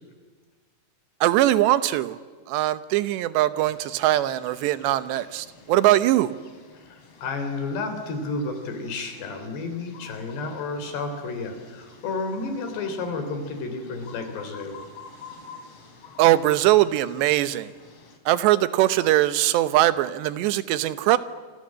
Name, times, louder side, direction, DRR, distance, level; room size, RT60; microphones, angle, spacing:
voice 1, 1.2-2.2 2.5-6.3 16.2-17.7 18.3-21.2, right 14 dB, 85° right, 13 dB, 3.2 m, -21 dB
sound 1, 3.6-18.2, left 5 dB, 40° left, 3.5 m, -49 dB
voice 2, 6.8-14.8, left 3 dB, 75° left, 7 dB, 5.5 m, -31 dB
27.0 x 27.0 x 7.7 m, 1.5 s
omnidirectional pair, 4.9 m